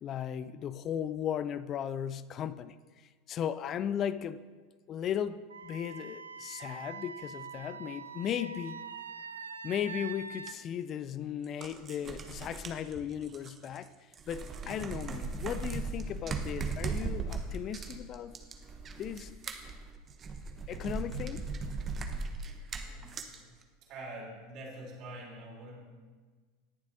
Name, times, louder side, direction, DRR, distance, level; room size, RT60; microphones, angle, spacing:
voice 1, 0.0-4.4 4.9-8.8 9.6-13.9 14.3-18.3 19.0-19.3 20.7-21.5, left 9 dB, 40° left, 0.4 m, -36 dB
Wind instrument woodwind instrument, 5.5-10.6, right 6 dB, 85° right, 0.3 m, -44 dB
sound 1, 10.5-10.6 11.4-13.9 14.1-23.4, right 4 dB, 35° right, 1.0 m, -38 dB
voice 2, 22.2-23.5 23.8-25.8, right 1 dB, 50° right, 3.4 m, -47 dB
19.0 x 7.3 x 2.7 m
hypercardioid pair, 80°, 0 cm